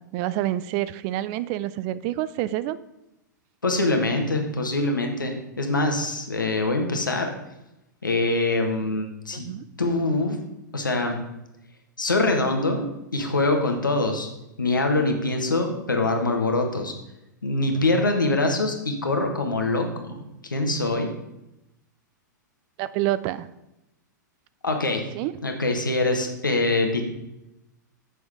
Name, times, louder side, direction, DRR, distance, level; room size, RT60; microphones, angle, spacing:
voice 1, 0.0-2.8 9.3-9.7 22.8-23.5 25.1-25.3, right 14 dB, 40° right, 16 dB, 0.4 m, -27 dB
voice 2, 3.6-7.3 8.0-9.5 9.8-10.4 10.7-11.2 12.0-14.3 14.6-16.9 17.4-20.2 20.5-21.1 24.6-25.1 25.4-27.0, left 2 dB, 85° left, 3 dB, 1.5 m, -24 dB
7.8 x 6.4 x 4.9 m, 0.90 s
figure-of-eight pair, 105°, 10 cm